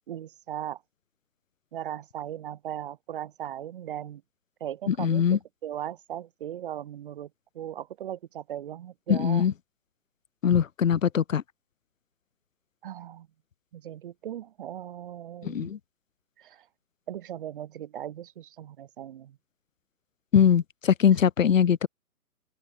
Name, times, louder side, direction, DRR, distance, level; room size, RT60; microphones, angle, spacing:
voice 1, 0.1-0.8 1.7-4.2 4.6-7.3 7.5-9.4 12.8-13.3 13.7-15.7 16.4-16.7 17.1-19.4, right 11 dB, 35° right, 1.7 m, -38 dB
voice 2, 4.9-5.4 9.1-9.5 10.4-11.4 15.4-15.8 20.3-21.9, left 8 dB, 55° left, 1.2 m, -22 dB
open air
figure-of-eight pair, 150°, 46 cm